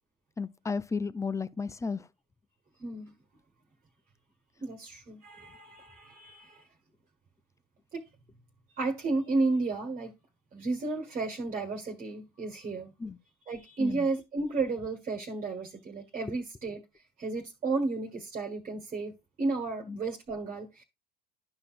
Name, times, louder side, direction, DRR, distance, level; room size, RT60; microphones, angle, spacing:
voice 1, 0.4-2.1 13.0-13.2 13.8-14.1 19.9-20.0, left 4 dB, 15° left, 0.5 m, -33 dB
voice 2, 2.8-3.1 4.6-6.7 7.9-8.0 8.8-10.1 10.5-12.9 13.5-16.8 17.2-19.1 19.4-20.8, right 3 dB, 35° right, 1.6 m, -32 dB
11.5 x 5.6 x 2.5 m
hypercardioid pair, 65°, 21 cm